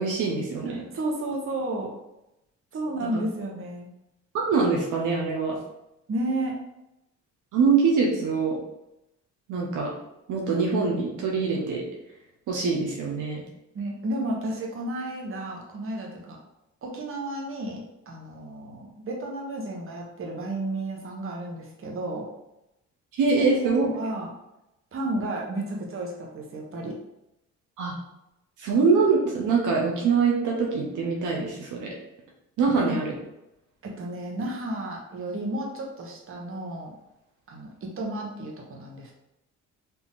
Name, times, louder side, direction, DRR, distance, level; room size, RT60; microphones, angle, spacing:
voice 1, 0.0-0.8 4.3-5.6 7.5-8.6 9.5-9.9 10.3-11.8 12.5-13.4 23.1-23.9 27.8-27.9 28.6-31.9 32.6-33.1, right 4 dB, 80° right, -1 dB, 0.9 m, -24 dB
voice 2, 0.6-1.9 2.7-3.9 6.1-6.6 13.7-16.4 16.8-22.3 23.6-24.3 24.9-26.9 32.7-33.0 33.8-37.0 37.5-39.1, right 1 dB, 45° right, -1 dB, 1.2 m, -32 dB
4.3 x 2.9 x 3.7 m, 0.88 s
cardioid pair, 90°, 30 cm